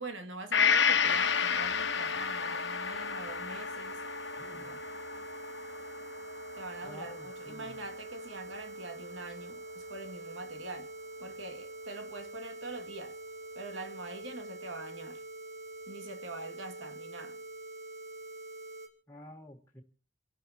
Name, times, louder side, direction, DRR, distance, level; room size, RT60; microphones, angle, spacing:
voice 1, 0.0-4.0 4.5-4.8 6.5-10.9 11.2-13.2 13.5-15.2 15.9-17.4, right 2 dB, 80° right, 2.2 m, -44 dB
Gong, 0.5-8.2 8.5-8.6, left 6 dB, 70° left, 1.2 m, -31 dB
sound 1, 1.0-18.9, right 2 dB, 60° right, 2.9 m, -45 dB
voice 2, 4.4-4.8 6.8-7.8 19.1-19.8, left 1 dB, 15° left, 1.5 m, -50 dB
29.0 x 12.0 x 2.9 m
head